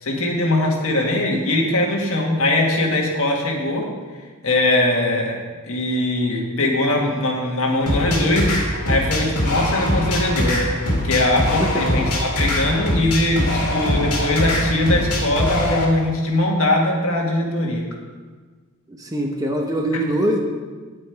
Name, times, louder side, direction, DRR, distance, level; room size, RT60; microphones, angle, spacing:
voice 1, 0.0-3.9 4.4-5.4 5.6-10.8 11.0-17.9, left 1 dB, 65° left, 0 dB, 1.8 m, -21 dB
sound 1, 7.9-15.9, left 1 dB, 80° left, 2.2 m, -22 dB
voice 2, 18.9-20.4, right 1 dB, 15° right, 1 dB, 1.0 m, -23 dB
9.6 x 8.7 x 4.6 m, 1.4 s
head